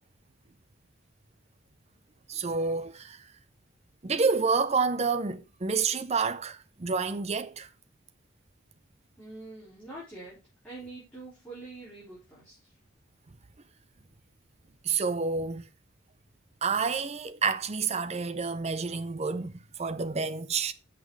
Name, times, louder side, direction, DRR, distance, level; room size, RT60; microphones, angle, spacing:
voice 1, 2.3-3.2 4.0-7.7 14.8-15.6 16.6-20.7, right 4 dB, 30° right, 0.6 m, -29 dB
voice 2, 9.2-10.4 10.6-12.7, right 2 dB, 5° left, 4.0 m, -45 dB
8.1 x 6.0 x 4.7 m
head